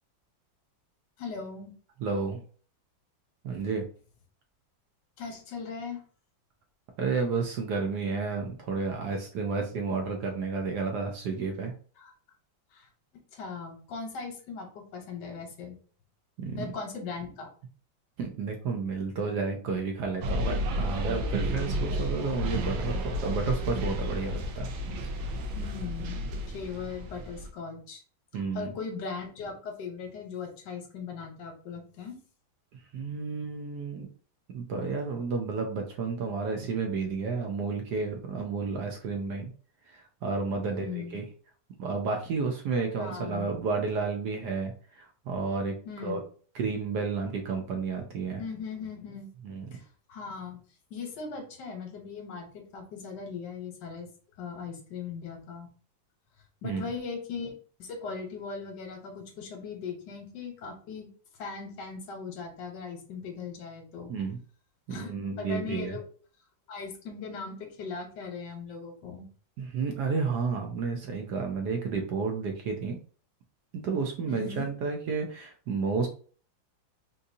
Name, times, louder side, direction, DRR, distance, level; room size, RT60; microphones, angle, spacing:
voice 1, 1.2-1.7 5.2-6.0 12.0-12.1 12.7-12.9 13.3-15.8 16.6-17.5 25.6-26.2 26.5-28.0 28.3-32.1 40.6-41.2 43.0-43.5 45.8-46.2 48.4-49.3 49.7-50.6 50.9-54.1 54.4-55.7 56.6-57.5 57.8-61.1 61.4-64.1 64.9-66.0 66.7-69.3 74.3-74.7, left 5 dB, 65° left, 3 dB, 1.4 m, -39 dB
voice 2, 2.0-2.4 3.4-3.8 7.0-11.7 16.4-16.7 18.2-24.7 28.3-28.7 32.9-34.1 34.5-39.5 39.9-41.2 41.8-45.8 46.0-46.2 46.5-48.4 49.4-49.8 56.6-56.9 64.1-64.4 64.9-66.0 69.6-73.0 73.7-76.1, right 4 dB, 70° right, 3 dB, 1.0 m, -31 dB
sound 1, 20.2-27.5, equal, 90° right, 1.4 m, -32 dB
4.0 x 2.5 x 2.6 m, 0.42 s
omnidirectional pair, 2.1 m